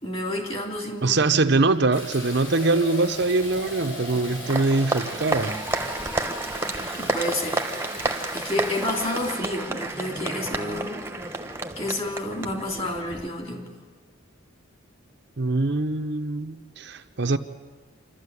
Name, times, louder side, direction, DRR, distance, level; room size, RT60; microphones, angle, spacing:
voice 1, 0.0-1.2 7.0-7.6 7.9-11.0 11.3-13.7, left 1 dB, 25° left, 2.9 m, -30 dB
voice 2, 1.0-5.6 15.4-17.4, right 3 dB, 55° right, 0.8 m, -23 dB
Fill (with liquid), 1.9-9.4, left 2 dB, 65° left, 7.2 m, -39 dB
Applause, 3.2-13.3, right 2 dB, 10° right, 1.1 m, -31 dB
27.5 x 12.5 x 9.7 m
head